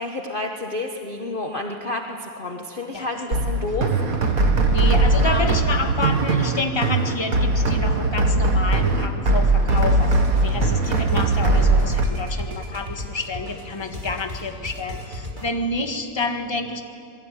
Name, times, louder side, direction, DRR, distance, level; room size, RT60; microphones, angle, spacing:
voice 1, 0.0-3.9 5.2-5.4, left 2 dB, 30° left, 3 dB, 1.4 m, -30 dB
sound 1, 3.3-12.0, right 2 dB, 50° right, 2.2 m, -20 dB
voice 2, 4.7-10.2 10.4-16.8, left 2 dB, 15° left, 5 dB, 1.6 m, -28 dB
sound 2, 9.7-15.5, left 1 dB, 25° right, 3.5 m, -36 dB
27.0 x 21.5 x 9.4 m, 2.4 s
omnidirectional pair, 2.0 m